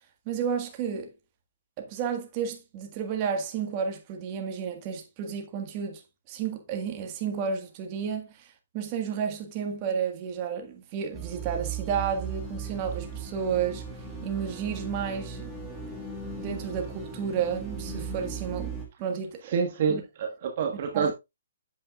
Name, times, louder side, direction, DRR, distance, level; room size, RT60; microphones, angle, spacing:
voice 1, 0.2-1.1 1.8-6.0 6.3-8.4 8.7-13.8 14.2-15.5 16.4-18.7 19.0-19.6 19.9-20.0 20.9-21.1, right 7 dB, 30° right, 1.6 m, -31 dB
sound 1, 11.1-18.9, right 5 dB, ahead, 2.4 m, -37 dB
voice 2, 19.4-21.1, right 6 dB, 45° right, 1.4 m, -27 dB
8.5 x 7.4 x 2.4 m
hypercardioid pair, 155°, 0 cm